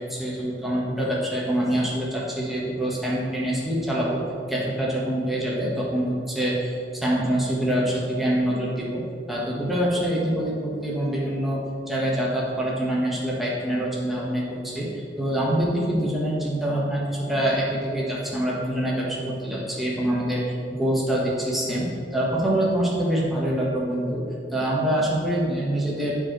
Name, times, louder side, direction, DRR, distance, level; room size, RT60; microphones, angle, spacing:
voice 1, 0.0-4.2 4.5-9.0 9.3-24.2 24.5-26.2, right 1 dB, ahead, -5 dB, 1.6 m, -25 dB
7.6 x 5.0 x 6.1 m, 2.3 s
head